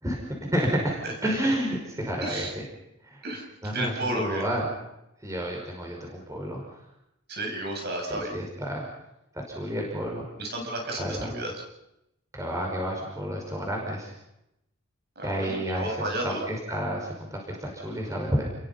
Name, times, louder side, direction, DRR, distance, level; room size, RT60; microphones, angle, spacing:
voice 1, 0.5-2.6 3.0-3.2 3.6-4.7 5.2-6.8 8.1-8.9 9.3-10.3 11.0-11.3 12.3-14.1 15.2-18.5, equal, 15° right, 0 dB, 5.5 m, -30 dB
voice 2, 3.7-4.4 7.3-8.4 10.4-11.5 15.2-16.4, right 1 dB, 50° right, 1 dB, 7.8 m, -32 dB
30.0 x 22.5 x 5.7 m, 0.84 s
head